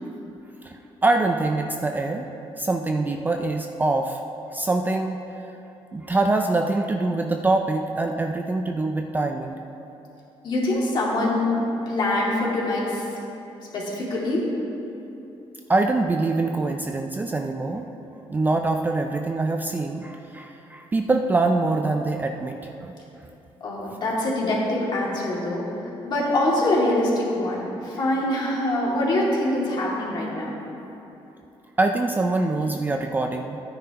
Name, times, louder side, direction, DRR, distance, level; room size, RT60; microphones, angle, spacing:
voice 1, 0.6-2.3 2.6-4.2 4.5-5.5 5.9-9.6 15.7-17.9 18.3-22.9 31.8-33.6, right 2 dB, 15° right, 4 dB, 0.4 m, -24 dB
voice 2, 10.4-11.5 11.9-13.1 13.7-14.4 23.6-25.6 26.0-30.6, left 1 dB, 45° left, -5 dB, 2.4 m, -24 dB
13.5 x 9.6 x 2.9 m, 3.0 s
cardioid pair, 145°, 11 cm